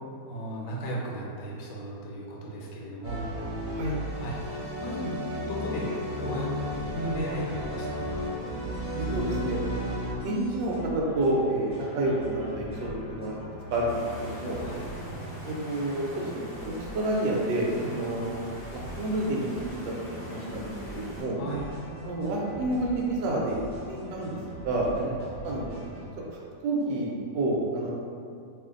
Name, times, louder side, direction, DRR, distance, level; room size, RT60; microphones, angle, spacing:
voice 1, 0.3-3.2 4.1-5.1 5.4-5.9 6.1-6.5 6.9-8.3 14.5-14.8 17.8-18.0 21.3-21.7 24.9-25.2, equal, 75° left, -3 dB, 1.3 m, -36 dB
sound 1, 3.0-10.1, equal, 60° right, 0.9 m, -33 dB
sound 2, 6.5-26.1, equal, 5° left, 1.1 m, -42 dB
voice 2, 8.9-9.6 10.2-14.0 14.3-14.6 15.0-15.1 15.4-19.8 20.1-21.3 22.0-23.6 23.9-24.4 24.6-24.9 25.4-25.7 26.3-27.9, right 1 dB, 85° right, -3 dB, 1.3 m, -29 dB
Water, 13.9-21.2, equal, 50° left, 0.7 m, -45 dB
2.9 x 2.5 x 3.6 m, 2.5 s
omnidirectional pair, 2.0 m